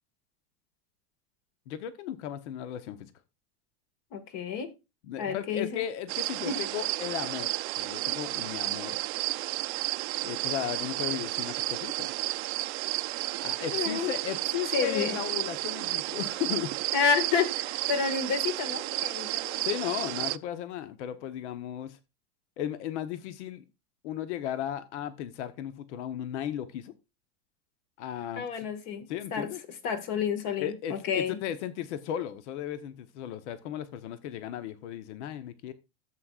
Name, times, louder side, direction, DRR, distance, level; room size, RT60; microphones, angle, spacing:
voice 1, 1.7-3.1 5.0-9.0 10.2-12.1 13.4-16.7 19.6-22.0 22.6-23.6 24.0-26.9 28.0-28.7 29.1-29.6 30.6-35.7, left 11 dB, 75° left, 1.0 m, -35 dB
voice 2, 4.1-4.7 5.2-5.8 6.5-6.6 13.7-14.1 14.7-15.2 16.9-19.6 28.4-29.5 29.8-31.4, left 6 dB, 50° left, 1.8 m, -30 dB
sound 1, 6.1-20.4, right 21 dB, 70° right, 0.5 m, -32 dB
13.5 x 7.7 x 2.4 m
supercardioid pair, 145°, 35 cm